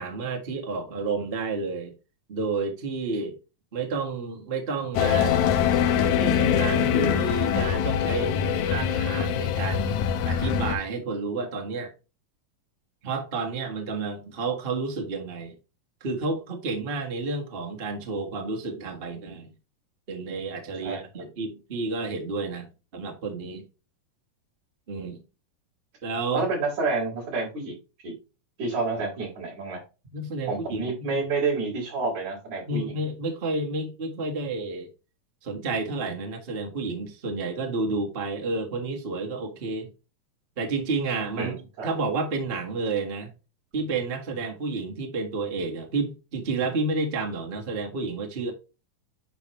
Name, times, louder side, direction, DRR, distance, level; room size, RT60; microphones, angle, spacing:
voice 1, 0.0-1.9 2.3-3.4 3.7-5.4 6.1-8.3 8.6-10.0 10.2-11.9 13.0-15.6 16.0-19.5 20.1-23.7 24.9-25.2 26.0-26.4 30.1-31.2 32.7-34.9 35.4-39.9 40.6-41.5 41.8-43.3 43.7-48.5, right 3 dB, 40° right, 0.8 m, -30 dB
sound 1, 5.0-10.8, left 8 dB, 75° left, 2.1 m, -23 dB
voice 2, 26.3-27.7 28.0-28.1 28.6-29.8 30.5-32.9 41.4-41.9, right 3 dB, 60° right, 5.3 m, -29 dB
9.1 x 4.8 x 3.1 m
omnidirectional pair, 3.7 m